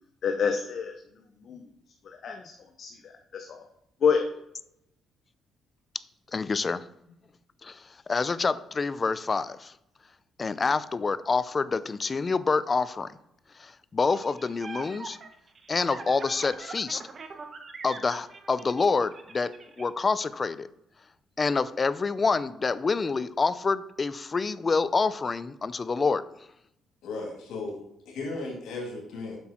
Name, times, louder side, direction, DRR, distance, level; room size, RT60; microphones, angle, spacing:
voice 1, 0.2-0.9 1.5-1.6 2.2-2.5 2.8-3.6 4.0-4.2, left 6 dB, 60° left, 4 dB, 0.8 m, -27 dB
voice 2, 6.3-6.8 7.6-9.7 10.4-13.1 13.6-15.2 15.7-17.0 17.8-19.5 19.8-20.7 21.4-26.2, left 4 dB, 35° left, 16 dB, 0.5 m, -27 dB
sound 1, 14.1-19.8, right 4 dB, 45° right, 1.1 m, -43 dB
voice 3, 27.0-27.8 28.1-29.4, left 3 dB, 90° left, 0 dB, 2.6 m, -35 dB
7.7 x 6.1 x 4.4 m, 0.79 s
cardioid pair, 90°, 0 cm